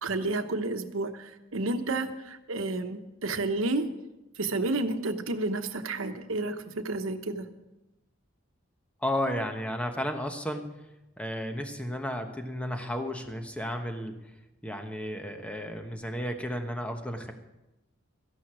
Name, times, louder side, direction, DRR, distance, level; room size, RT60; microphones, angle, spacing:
voice 1, 0.0-3.9 4.4-7.5, right 2 dB, 85° right, 8 dB, 1.1 m, -31 dB
voice 2, 9.0-10.7 11.2-14.2 14.6-17.3, equal, 5° left, 5 dB, 1.1 m, -33 dB
14.0 x 11.0 x 6.2 m, 0.98 s
head